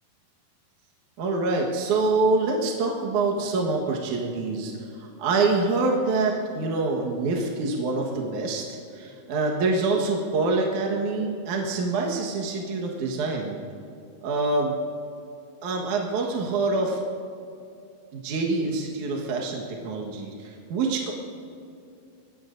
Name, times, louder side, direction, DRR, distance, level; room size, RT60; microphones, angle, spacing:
voice 1, 1.2-13.6 14.2-14.8 15.6-17.0 18.1-21.1, right 3 dB, 60° right, -1 dB, 2.5 m, -26 dB
24.5 x 19.0 x 2.6 m, 2.5 s
omnidirectional pair, 4.5 m